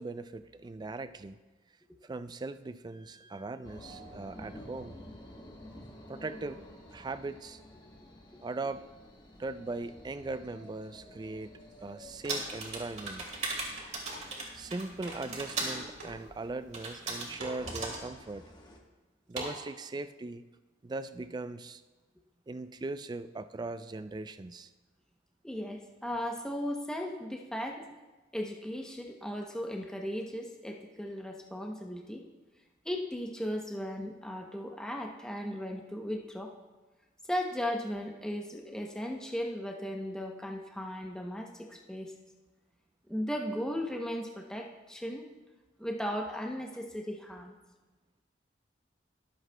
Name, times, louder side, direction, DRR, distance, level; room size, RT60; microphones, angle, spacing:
voice 1, 0.0-1.4 2.0-5.0 6.1-6.6 6.9-7.6 8.4-8.8 9.4-13.3 14.5-18.4 19.3-20.4 20.8-21.8 22.5-24.7, right 3 dB, 20° right, 12 dB, 0.3 m, -39 dB
sound 1, 3.6-18.8, left 1 dB, 20° left, 1.1 m, -51 dB
sound 2, 11.7-11.8 12.2-13.0 13.8-14.3 15.1-15.4 15.7-16.2 16.7-17.1 17.3-17.7 18.3-18.4 19.3-19.6, right 2 dB, 90° right, 3.6 m, -42 dB
sound 3, 12.3-15.8 16.7-17.3 17.7-18.0, right 3 dB, 35° right, 2.2 m, -37 dB
voice 2, 25.4-27.9 28.3-32.2 32.8-36.5 37.3-42.1 43.1-45.3 45.8-47.5, equal, 5° left, 1 dB, 0.7 m, -36 dB
22.0 x 7.7 x 2.2 m, 1.2 s
head